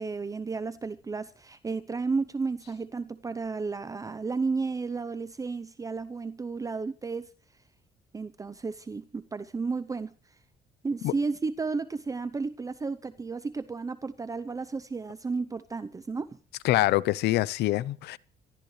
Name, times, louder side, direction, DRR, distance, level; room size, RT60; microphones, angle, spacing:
voice 1, 0.0-7.3 8.1-10.1 10.8-16.4, right 4 dB, 20° right, 0.7 m, -33 dB
voice 2, 16.6-18.2, left 16 dB, 80° left, 0.7 m, -25 dB
25.5 x 13.0 x 3.2 m
cardioid pair, 110°, 17 cm